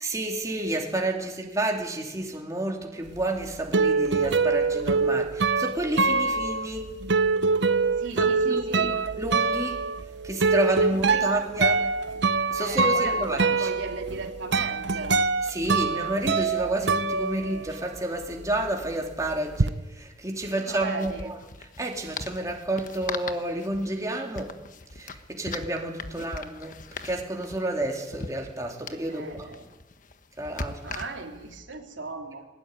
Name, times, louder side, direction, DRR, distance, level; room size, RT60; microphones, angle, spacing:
voice 1, 0.0-6.8 8.2-8.9 9.2-9.8 10.2-11.8 12.5-13.7 15.5-24.6 24.9-26.7 27.0-29.5 30.4-30.8, right 1 dB, 15° right, 1 dB, 3.1 m, -30 dB
sound 1, 3.2-18.0 18.2-19.7, right 4 dB, 65° right, 0.8 m, -25 dB
voice 2, 8.0-8.9 11.1-11.2 12.6-15.2 20.6-21.3 26.0-26.2 29.1-29.6 30.8-32.4, right 3 dB, 80° right, 2 dB, 3.2 m, -36 dB
sound 2, 18.4-18.5 18.7-18.8 20.3-31.5, left 4 dB, 45° left, 1.4 m, -40 dB
22.0 x 19.5 x 9.8 m, 1.1 s
head